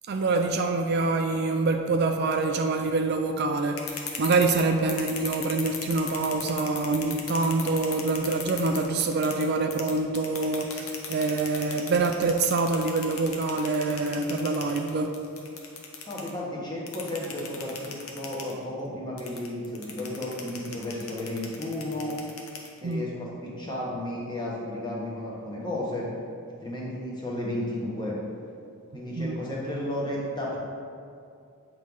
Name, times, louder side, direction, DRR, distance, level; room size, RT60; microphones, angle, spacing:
voice 1, 0.1-15.2 22.8-23.1 28.9-29.4, right 3 dB, 50° right, 4 dB, 0.4 m, -26 dB
sound 1, 3.6-9.4 9.7-16.3 16.9-18.5 19.2-22.9, left 6 dB, 75° left, 0.9 m, -37 dB
voice 2, 16.1-22.2 22.8-26.1 26.6-28.2 28.9-30.6, left 1 dB, 20° left, -5 dB, 1.3 m, -33 dB
8.4 x 3.2 x 5.4 m, 2.4 s
head